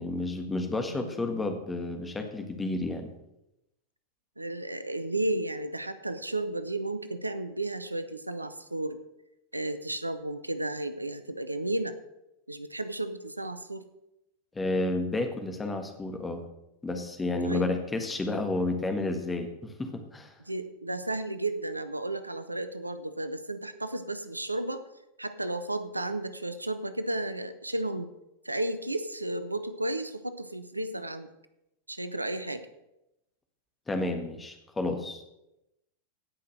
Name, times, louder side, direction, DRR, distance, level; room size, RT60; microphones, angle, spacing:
voice 1, 0.0-3.1 14.5-16.4 16.8-20.3 33.9-35.2, left 2 dB, 15° left, 6 dB, 1.6 m, -31 dB
voice 2, 0.9-1.2 4.4-9.0 9.5-12.0 12.5-13.8 17.4-17.7 20.5-24.8 25.2-28.1 28.4-31.3 31.9-32.7, right 2 dB, 85° right, 11 dB, 0.7 m, -33 dB
17.0 x 5.8 x 6.2 m, 0.89 s
figure-of-eight pair, 90°, 0 cm